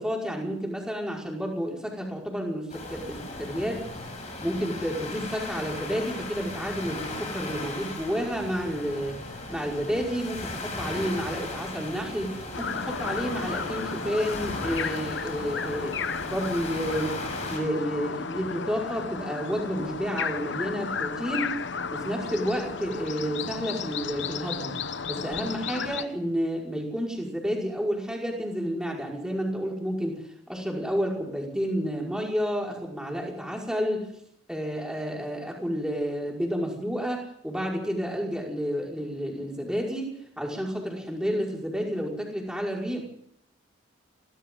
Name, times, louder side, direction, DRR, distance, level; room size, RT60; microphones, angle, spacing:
voice 1, 0.0-3.8 4.4-9.2 9.5-17.2 17.5-21.5 21.9-24.8 25.1-34.1 34.5-43.0, equal, 5° right, -1 dB, 5.4 m, -30 dB
sound 1, 2.7-17.6, left 2 dB, 35° left, 7.2 m, -37 dB
sound 2, 12.5-26.0, left 5 dB, 60° left, 0.9 m, -33 dB
29.0 x 23.5 x 3.9 m, 0.70 s
head